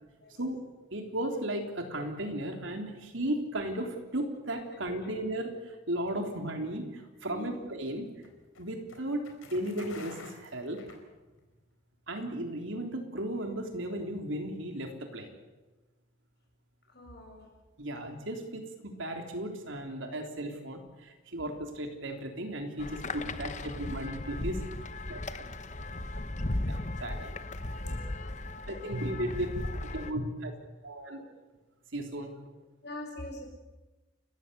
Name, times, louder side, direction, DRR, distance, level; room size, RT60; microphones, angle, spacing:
voice 1, 0.9-8.1 8.6-10.8 12.1-15.4 17.8-24.7 25.1-25.5 26.7-27.3 27.8-28.0 28.7-29.6 29.8-30.5 30.8-31.2 31.9-32.3, right 1 dB, 75° right, 4 dB, 3.5 m, -35 dB
voice 2, 4.7-5.2 7.3-7.6 16.9-17.5 32.8-33.5, left 1 dB, 55° left, 1 dB, 7.5 m, -43 dB
sound 1, 7.2-11.6, left 3 dB, 85° left, 4.4 m, -51 dB
sound 2, 22.8-30.1, left 2 dB, 35° left, 1.0 m, -36 dB
30.0 x 15.0 x 8.2 m, 1.2 s
head